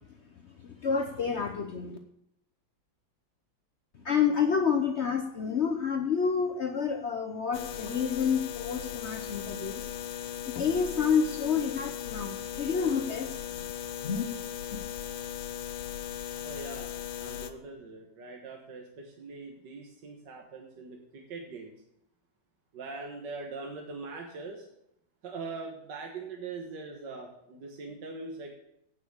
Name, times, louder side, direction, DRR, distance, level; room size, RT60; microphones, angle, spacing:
voice 1, 0.6-2.0 4.0-9.9 10.6-13.4 14.0-14.2 14.7-14.8, left 6 dB, 60° left, 5 dB, 0.7 m, -29 dB
sound 1, 7.5-17.5, left 9 dB, 80° left, 1.5 m, -38 dB
voice 2, 16.4-21.7 22.7-24.7 25.2-28.5, right 3 dB, 65° right, 0 dB, 1.9 m, -42 dB
8.4 x 6.6 x 7.9 m, 0.78 s
omnidirectional pair, 2.1 m